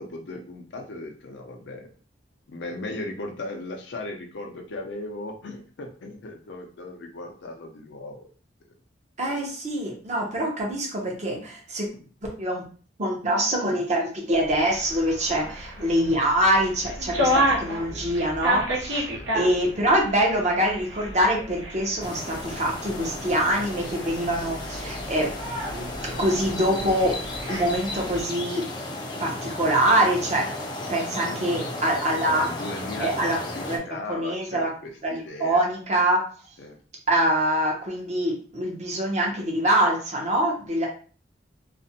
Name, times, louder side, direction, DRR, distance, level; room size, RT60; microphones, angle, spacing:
voice 1, 0.0-1.9 2.5-8.3 15.4-15.6 17.8-18.0 19.1-19.3 31.3-31.4 31.7-31.8 32.3-33.1 33.4-35.6 36.6-36.8, left 2 dB, 75° left, 3 dB, 0.5 m, -37 dB
voice 2, 9.2-11.9 12.4-12.6 13.0-19.1 19.3-25.3 25.7-27.2 27.5-28.6 29.2-30.5 30.9-32.5 33.0-33.4 33.7-33.8 34.1-34.7 35.0-36.5 37.1-40.9, right 1 dB, 40° right, -1 dB, 0.7 m, -24 dB
sound 1, 14.3-28.2, equal, 80° right, 0.8 m, -31 dB
sound 2, 22.0-33.8, left 2 dB, 25° left, 0.4 m, -34 dB
2.4 x 2.1 x 2.7 m, 0.41 s
head